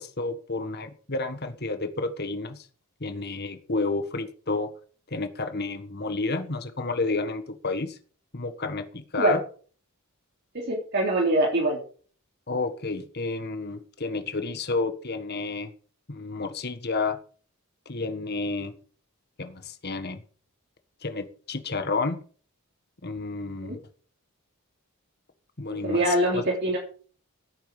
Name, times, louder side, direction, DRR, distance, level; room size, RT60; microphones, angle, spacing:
voice 1, 0.0-2.7 3.0-4.7 5.1-8.0 8.3-9.4 12.5-15.7 16.1-17.2 17.8-18.8 19.4-20.2 21.0-22.2 23.0-23.9 25.6-26.4, left 3 dB, 45° left, 8 dB, 1.5 m, -30 dB
voice 2, 10.5-11.8 23.6-23.8 25.8-26.8, right 1 dB, 50° right, -3 dB, 3.6 m, -23 dB
16.0 x 9.3 x 4.9 m, 0.42 s
head